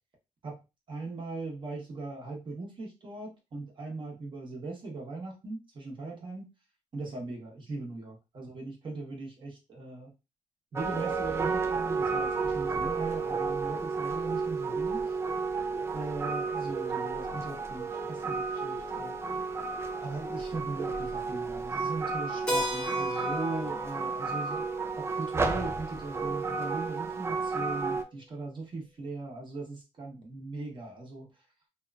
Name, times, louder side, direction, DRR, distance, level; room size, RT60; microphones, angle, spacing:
voice 1, 0.9-6.5 6.9-10.1 10.7-15.1 15.9-19.1 20.0-31.3, right 3 dB, 40° right, -1 dB, 0.9 m, -39 dB
sound 1, 10.8-28.0, right 4 dB, 20° right, 0.3 m, -32 dB
Keyboard (musical), 22.5-26.9, left 1 dB, 5° left, 0.7 m, -37 dB
2.8 x 2.2 x 2.3 m, 0.27 s
cardioid pair, 125°, 13 cm